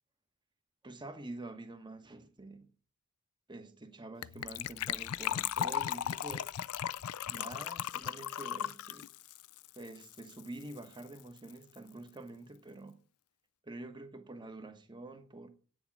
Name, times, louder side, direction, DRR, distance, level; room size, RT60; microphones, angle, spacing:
voice 1, 0.8-2.7 3.5-6.4 7.3-9.1 9.8-13.0 13.6-15.5, right 2 dB, 20° right, 1.2 m, -47 dB
Gurgling / Trickle dribble / Fill (with liquid), 4.2-10.5 10.7-10.8 11.0-11.2 11.5-11.6, left 10 dB, 80° left, 0.4 m, -37 dB
9.3 x 7.0 x 7.2 m
head